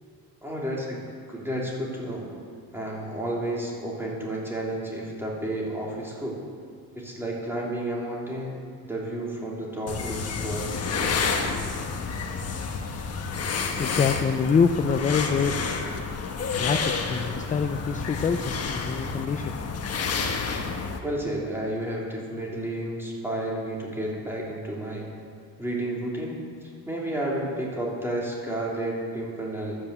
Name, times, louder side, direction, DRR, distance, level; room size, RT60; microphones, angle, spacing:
voice 1, 0.4-1.0 1.3-2.3 2.7-6.4 6.9-8.6 8.9-11.3 21.0-25.1 25.6-29.9, right 1 dB, 5° right, -4 dB, 3.0 m, -31 dB
sound 1, 9.9-21.0, left 5 dB, 40° left, 1.2 m, -30 dB
voice 2, 13.8-15.6 16.6-19.5, left 6 dB, 20° left, 7 dB, 0.4 m, -25 dB
11.5 x 8.6 x 8.0 m, 2.2 s
cardioid pair, 145°, 38 cm